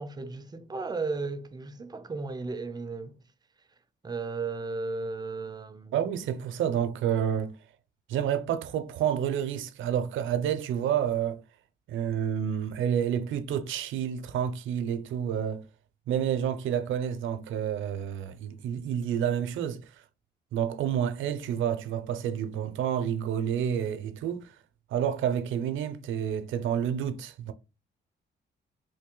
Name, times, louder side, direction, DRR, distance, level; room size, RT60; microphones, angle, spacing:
voice 1, 0.0-3.2 4.0-5.9, right 3 dB, 20° right, 0.5 m, -35 dB
voice 2, 5.9-7.5 8.1-11.4 11.9-15.6 16.1-19.8 20.5-24.5 24.9-27.5, right 9 dB, 80° right, 0.6 m, -29 dB
3.3 x 2.6 x 3.7 m
cardioid pair, 90°, 20 cm